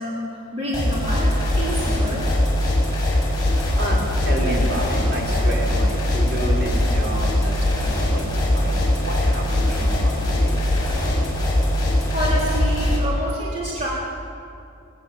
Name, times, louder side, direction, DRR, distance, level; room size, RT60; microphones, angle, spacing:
voice 1, 0.0-2.2 12.1-13.9, right 1 dB, 30° right, -6 dB, 4.0 m, -28 dB
sound 1, 0.7-13.0, left 1 dB, 20° left, 6.8 m, -21 dB
voice 2, 3.0-10.8, right 1 dB, 50° right, -3 dB, 5.1 m, -30 dB
20.5 x 20.5 x 7.4 m, 2.6 s
head